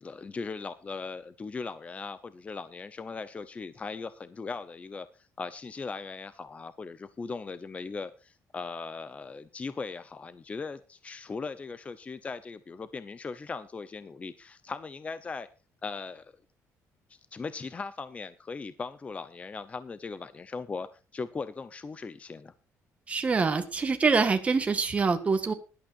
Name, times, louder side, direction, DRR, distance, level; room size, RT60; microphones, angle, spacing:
voice 1, 0.0-5.1 5.4-15.5 15.8-16.3 17.1-22.5, left 4 dB, 25° left, 13 dB, 0.8 m, -39 dB
voice 2, 23.1-25.5, right 4 dB, 25° right, 6 dB, 1.6 m, -25 dB
19.5 x 12.0 x 2.6 m, 0.31 s
cardioid pair, 150°, 6 cm